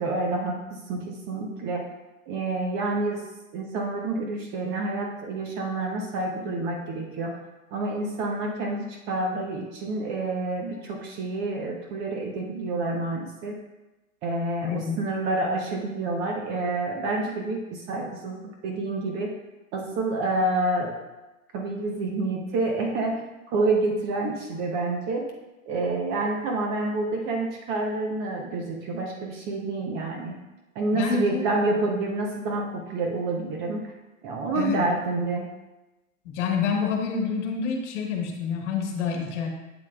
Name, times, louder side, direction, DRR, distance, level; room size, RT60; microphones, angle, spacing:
voice 1, 0.0-1.9 2.3-3.2 3.5-7.4 7.7-13.6 14.2-19.4 19.7-21.0 21.5-23.2 23.5-25.3 25.7-30.4 30.8-33.9 34.2-35.5, right 2 dB, 25° right, 1 dB, 0.6 m, -28 dB
voice 2, 14.6-15.0 30.9-31.4 34.5-34.8 36.2-39.5, left 6 dB, 55° left, 2 dB, 1.4 m, -27 dB
7.8 x 7.3 x 2.2 m, 1.1 s
hypercardioid pair, 130°, 43 cm